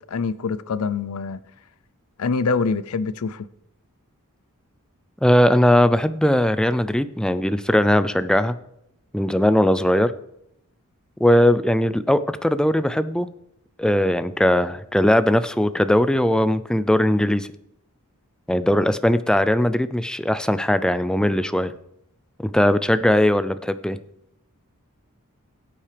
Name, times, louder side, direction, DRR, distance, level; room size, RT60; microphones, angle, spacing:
voice 1, 0.1-1.4 2.2-3.5, left 4 dB, 70° left, 0.5 m, -25 dB
voice 2, 5.2-8.5 9.1-10.1 11.2-13.3 13.8-17.5 18.5-21.7 22.4-24.0, left 1 dB, 5° left, 0.4 m, -19 dB
16.5 x 8.6 x 3.4 m
head